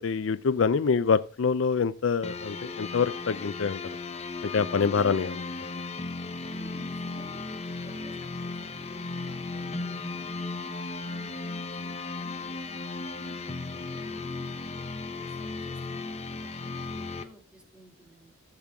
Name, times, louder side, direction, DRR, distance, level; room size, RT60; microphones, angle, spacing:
voice 1, 0.0-3.8 4.4-5.8, left 5 dB, 65° left, 0.5 m, -26 dB
sound 1, 2.2-17.2, left 3 dB, 30° left, 0.9 m, -36 dB
voice 2, 6.5-10.7 11.0-18.3, equal, 5° right, 2.5 m, -52 dB
14.0 x 7.4 x 3.6 m
head